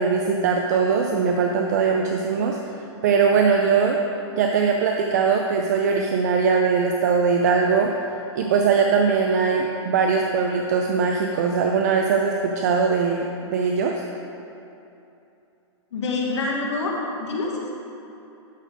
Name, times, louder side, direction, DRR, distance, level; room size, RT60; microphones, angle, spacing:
voice 1, 0.0-2.6 3.0-4.0 4.3-7.9 8.4-13.9, right 5 dB, 35° right, 2 dB, 0.4 m, -21 dB
voice 2, 15.9-17.7, left 3 dB, 65° left, -2 dB, 1.6 m, -26 dB
12.5 x 4.3 x 5.1 m, 2.8 s
hypercardioid pair, 170°, 16 cm